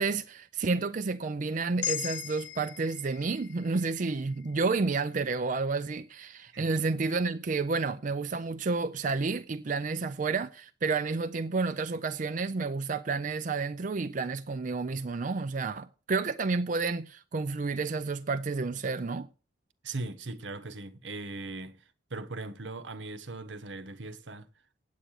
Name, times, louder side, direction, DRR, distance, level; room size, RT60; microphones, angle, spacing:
voice 1, 0.0-19.3, right 4 dB, 45° right, 0.5 m, -30 dB
sound 1, 1.8-6.1, left 10 dB, 80° left, 0.6 m, -40 dB
voice 2, 19.8-21.8 22.1-24.5, right 2 dB, 80° right, 1.1 m, -39 dB
8.9 x 8.4 x 6.4 m
head